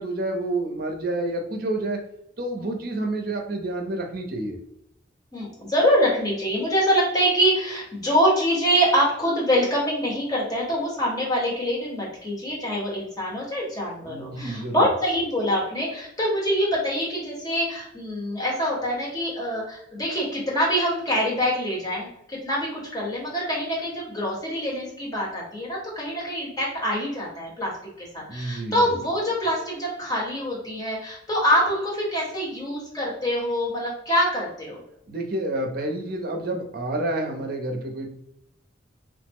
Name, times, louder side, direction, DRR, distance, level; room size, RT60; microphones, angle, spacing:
voice 1, 0.0-2.0 2.4-4.6 14.0-14.9 28.3-28.9 35.1-38.1, right 2 dB, 50° right, 3 dB, 0.6 m, -29 dB
voice 2, 5.3-27.7 28.0-34.8, equal, 20° left, -4 dB, 1.0 m, -25 dB
3.1 x 2.0 x 3.5 m, 0.78 s
head